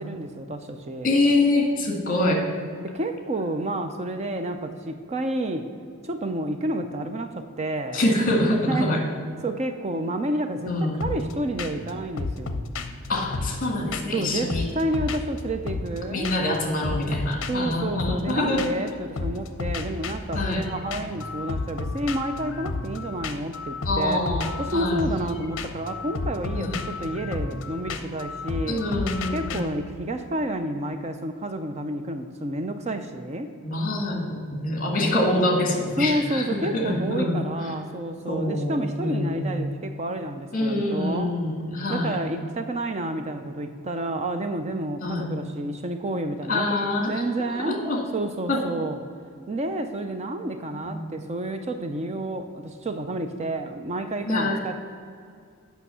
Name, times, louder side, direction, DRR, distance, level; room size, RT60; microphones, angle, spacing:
voice 1, 0.0-1.1 2.8-5.7 6.0-8.0 8.7-8.9 9.4-12.6 14.1-16.3 17.5-24.2 24.6-28.8 29.3-33.5 36.0-41.4 41.9-46.7 47.1-49.0 49.5-54.7, right 1 dB, 30° right, 8 dB, 0.5 m, -30 dB
voice 2, 1.0-2.4 7.9-9.0 10.7-10.9 13.1-14.6 16.1-18.7 20.3-20.7 23.9-25.0 26.5-26.7 28.6-29.6 33.6-37.4 38.3-38.7 39.0-39.5 40.5-42.2 45.0-45.3 46.5-47.2 47.6-48.0 48.5-48.6 50.9-51.0 54.3-54.5, left 2 dB, 40° left, 1 dB, 1.8 m, -25 dB
sound 1, 11.0-11.3 11.6-11.9 12.2-14.2 14.5-16.0 16.2-16.6 16.8-18.9 19.2-29.6, left 3 dB, 60° left, 0.7 m, -32 dB
8.5 x 5.7 x 6.9 m, 2.2 s
head